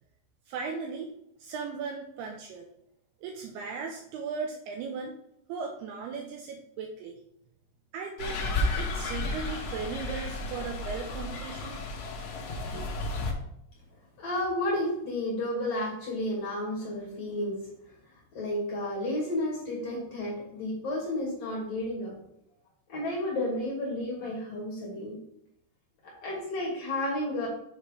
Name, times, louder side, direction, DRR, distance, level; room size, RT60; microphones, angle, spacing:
voice 1, 0.5-1.1 1.4-2.7 3.2-5.2 5.5-7.2 7.9-8.4 8.8-11.8, right 5 dB, 80° right, 3 dB, 2.4 m, -37 dB
sound 1, 8.2-13.3, left 2 dB, 85° left, 1.6 m, -32 dB
voice 2, 14.2-17.7 18.3-22.2 22.9-25.2 26.0-27.5, left 1 dB, 45° left, -4 dB, 2.7 m, -32 dB
7.5 x 3.4 x 5.0 m, 0.75 s
omnidirectional pair, 5.0 m